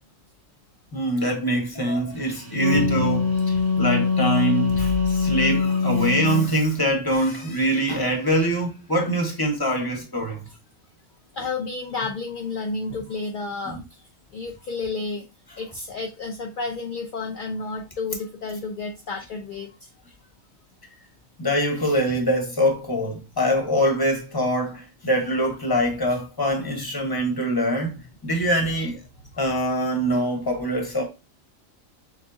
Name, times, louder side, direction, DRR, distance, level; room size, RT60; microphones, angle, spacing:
voice 1, 0.9-10.5 13.6-13.8 21.4-29.0 29.4-31.0, equal, 20° left, 1.1 m, -24 dB
Wind instrument woodwind instrument, 2.3-6.5, left 4 dB, 50° right, 1.0 m, -23 dB
voice 2, 11.3-13.8 14.3-15.2 15.6-19.7, left 3 dB, 50° left, 0.7 m, -31 dB
6.9 x 2.3 x 2.6 m
omnidirectional pair, 1.3 m